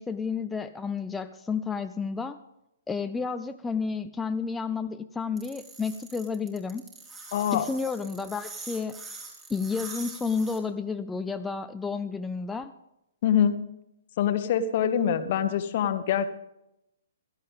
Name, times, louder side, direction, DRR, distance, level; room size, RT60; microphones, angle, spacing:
voice 1, 0.0-2.4 2.9-6.8 7.5-9.0 9.5-12.7, left 5 dB, 10° left, 8 dB, 0.4 m, -31 dB
sound 1, 5.4-10.6, right 3 dB, 20° right, 3.6 m, -43 dB
voice 2, 7.3-7.7 13.2-13.6 14.2-16.3, left 9 dB, 50° left, 11 dB, 1.0 m, -24 dB
16.5 x 13.5 x 3.6 m, 0.85 s
figure-of-eight pair, 125°, 0 cm